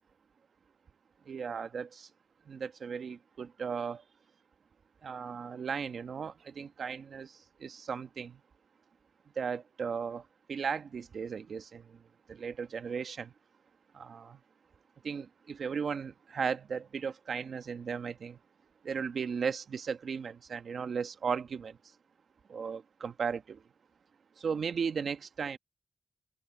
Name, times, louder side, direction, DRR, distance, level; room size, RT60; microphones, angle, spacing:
voice 1, 1.3-2.1 2.5-4.0 5.0-7.3 7.6-8.4 9.4-10.2 10.5-11.8 12.3-13.3 13.9-14.4 15.0-18.4 18.8-21.7 22.5-23.6 24.4-25.6, right 6 dB, 75° right, 1.1 m, -36 dB
open air
wide cardioid pair, 100°, 0 cm